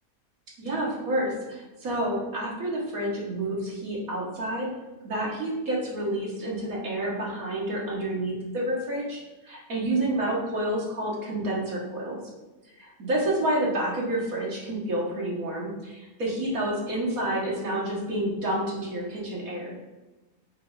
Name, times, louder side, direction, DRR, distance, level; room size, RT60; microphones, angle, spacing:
voice 1, 0.6-4.7 5.0-12.2 12.8-19.7, right 1 dB, 70° right, -5 dB, 2.0 m, -29 dB
5.6 x 4.8 x 3.9 m, 1.2 s
omnidirectional pair, 1.5 m